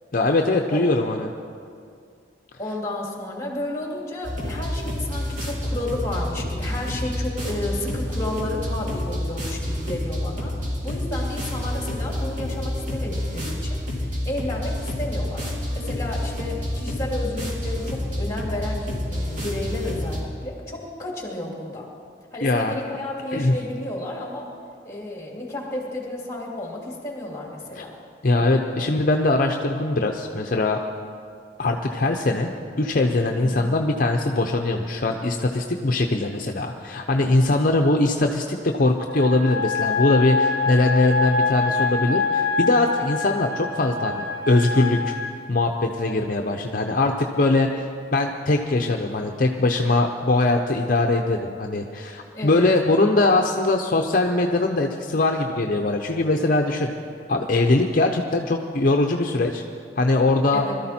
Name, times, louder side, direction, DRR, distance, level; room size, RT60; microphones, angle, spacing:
voice 1, 0.1-1.3 22.4-22.7 23.3-23.5 27.8-27.9 28.2-30.8 31.6-32.5 32.8-45.1 45.5-47.9 48.1-56.9 57.3-59.6 60.0-60.6, left 2 dB, 50° left, 3 dB, 0.7 m, -21 dB
voice 2, 2.6-15.4 15.7-21.9 22.3-24.5 24.8-27.9 28.3-28.5 33.4-33.7 52.3-52.7 60.5-60.7, left 1 dB, 15° left, -2 dB, 2.6 m, -32 dB
sound 1, 4.2-20.2, left 1 dB, 45° right, 3.0 m, -28 dB
sound 2, 39.1-45.2, left 4 dB, 90° right, 3.3 m, -25 dB
21.5 x 13.0 x 4.3 m, 2.3 s
head